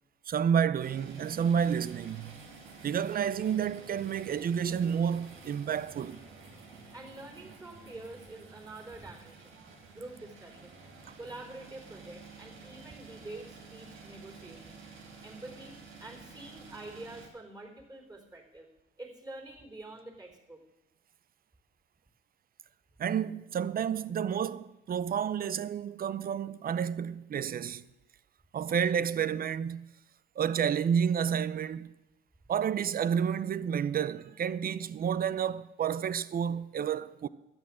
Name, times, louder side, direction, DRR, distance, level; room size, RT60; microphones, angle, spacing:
voice 1, 0.3-2.4 2.8-6.2 23.0-27.8 28.5-29.9 30.4-31.9 32.5-37.3, right 8 dB, 45° right, 0.6 m, -30 dB
sound 1, 0.8-17.3, right 4 dB, 90° right, 2.7 m, -51 dB
voice 2, 6.9-9.6 9.9-10.7 11.2-14.8 15.2-18.7 19.0-20.6, right 2 dB, 20° right, 3.8 m, -47 dB
12.0 x 8.7 x 7.6 m
cardioid pair, 90°, 20 cm